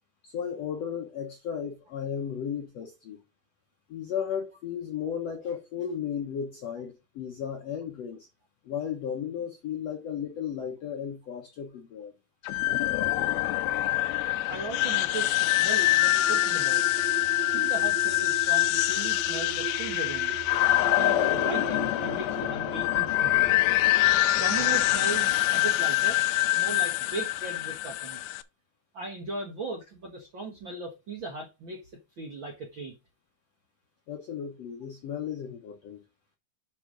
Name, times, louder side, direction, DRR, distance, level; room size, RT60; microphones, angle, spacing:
voice 1, 0.2-3.2 3.9-8.3 8.6-12.1 34.1-36.0, left 8 dB, 70° left, 1.5 m, -34 dB
sound 1, 12.4-28.4, left 16 dB, 90° left, 2.5 m, -25 dB
voice 2, 14.5-17.0 17.5-20.3 20.8-23.6 24.3-26.2 26.5-28.2 28.9-31.9 32.2-33.0, right 3 dB, 60° right, 1.3 m, -38 dB
sound 2, 15.8-24.1, right 10 dB, 85° right, 2.8 m, -40 dB
7.8 x 5.8 x 3.9 m
omnidirectional pair, 4.3 m